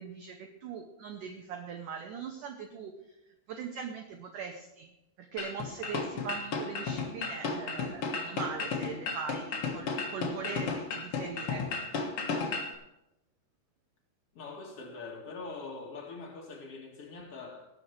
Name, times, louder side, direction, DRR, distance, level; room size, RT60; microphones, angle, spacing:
voice 1, 0.0-3.2 3.5-11.7, right 6 dB, 90° right, 1.8 m, -41 dB
sound 1, 5.4-12.7, left 4 dB, 75° left, 1.3 m, -34 dB
voice 2, 14.3-17.7, left 3 dB, 50° left, 1.8 m, -43 dB
18.5 x 7.0 x 4.6 m
omnidirectional pair, 5.0 m